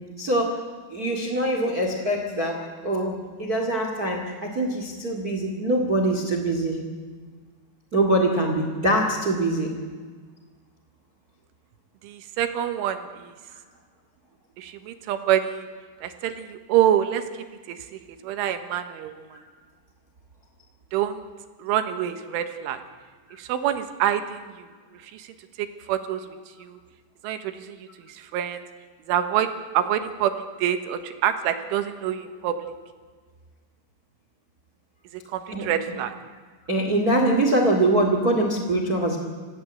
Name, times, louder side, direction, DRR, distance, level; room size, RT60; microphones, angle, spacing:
voice 1, 0.2-0.6 0.9-6.8 7.9-9.7 19.3-19.4 35.5-35.7 36.7-39.2, right 1 dB, 45° right, 4 dB, 1.1 m, -23 dB
voice 2, 12.0-13.3 14.6-15.7 16.0-17.2 17.7-17.8 18.2-19.2 20.9-21.2 21.6-22.8 23.4-24.5 25.1-25.3 25.9-26.2 26.6-26.8 27.2-27.8 28.1-28.6 29.1-29.5 29.8-30.3 30.6-32.6 35.3-36.1, right 10 dB, 80° right, 8 dB, 3.7 m, -26 dB
26.0 x 16.5 x 8.2 m, 1.5 s
omnidirectional pair, 5.7 m